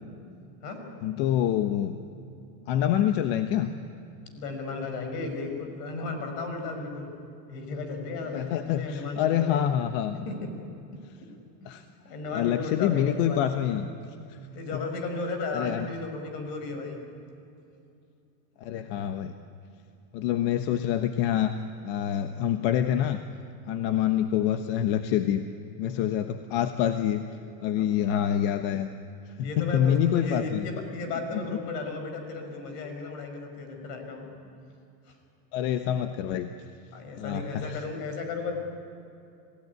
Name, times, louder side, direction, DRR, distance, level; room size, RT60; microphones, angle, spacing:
voice 1, 1.0-2.0 2.7-3.7 8.3-10.2 11.6-11.8 12.3-13.9 14.3-14.4 15.5-15.9 18.6-19.3 20.1-21.6 21.8-23.2 23.7-25.4 25.8-27.2 27.6-28.9 29.2-30.6 31.3-31.4 35.5-36.5 37.2-37.8, left 10 dB, 65° left, 7 dB, 1.3 m, -26 dB
voice 2, 4.3-7.1 7.5-9.6 10.3-10.4 11.6-11.7 12.0-13.8 14.5-17.0 27.8-27.9 29.4-34.4 35.1-35.2 36.9-38.5, left 3 dB, 85° left, 5 dB, 6.0 m, -35 dB
27.5 x 17.0 x 9.7 m, 2.7 s
supercardioid pair, 120°, 46 cm